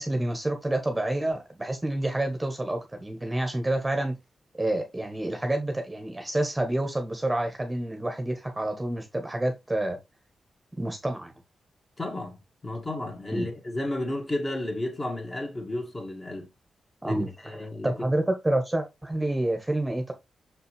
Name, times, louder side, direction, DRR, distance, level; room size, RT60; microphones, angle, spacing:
voice 1, 0.0-4.1 4.6-10.0 10.8-11.3 13.3-13.5 17.0-20.1, right 1 dB, 15° right, 1.3 m, -28 dB
voice 2, 12.0-12.4 12.6-16.5 17.0-17.2 17.4-17.9, left 1 dB, 30° left, 2.1 m, -32 dB
6.3 x 5.6 x 3.2 m
wide cardioid pair, 110°, 0 cm